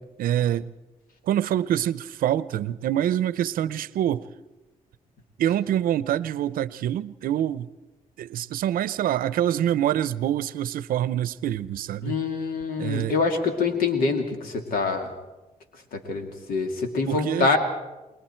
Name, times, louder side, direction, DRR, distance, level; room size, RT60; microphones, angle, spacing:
voice 1, 0.2-0.7 1.3-4.3 5.4-7.7 8.2-12.2 12.8-13.1 17.1-17.6, right 11 dB, 85° right, 0.6 m, -25 dB
voice 2, 12.0-15.1 15.9-17.6, left 4 dB, 90° left, 2.5 m, -25 dB
28.5 x 21.0 x 4.5 m
cardioid pair, 75°, 14 cm